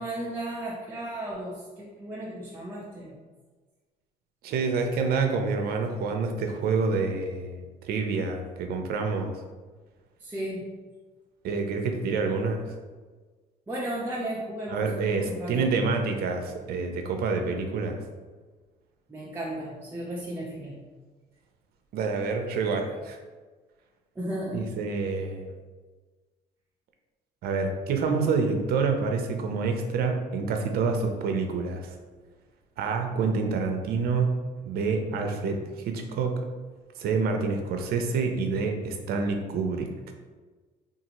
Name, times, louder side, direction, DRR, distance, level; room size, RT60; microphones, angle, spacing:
voice 1, 0.0-3.2 10.2-10.7 13.7-15.7 19.1-20.8 24.2-24.6, right 1 dB, 10° right, -6 dB, 0.5 m, -34 dB
voice 2, 4.4-9.3 11.4-12.7 14.7-18.0 21.9-23.2 24.5-25.5 27.4-32.0 32.8-36.4 37.0-39.9, right 4 dB, 65° right, 4 dB, 0.5 m, -27 dB
2.7 x 2.4 x 2.9 m, 1.3 s
cardioid pair, 110°, 17 cm